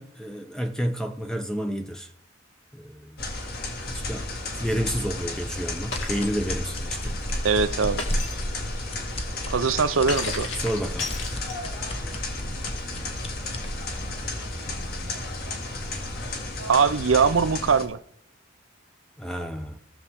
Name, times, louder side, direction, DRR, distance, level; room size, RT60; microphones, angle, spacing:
voice 1, 0.0-2.1 2.7-3.2 3.9-4.3 4.6-7.2 10.6-11.1 19.2-19.8, equal, 5° left, 0.7 m, -30 dB
sound 1, 3.2-17.9, left 2 dB, 50° left, 1.9 m, -33 dB
Shatter, 5.9-6.4 8.0-8.5 10.1-11.8, left 3 dB, 70° left, 2.3 m, -33 dB
sound 2, 5.9-13.7, equal, 30° left, 1.0 m, -34 dB
voice 2, 7.4-8.0 9.5-10.5 16.7-18.0, right 5 dB, 80° right, 0.6 m, -21 dB
17.0 x 7.0 x 3.6 m
head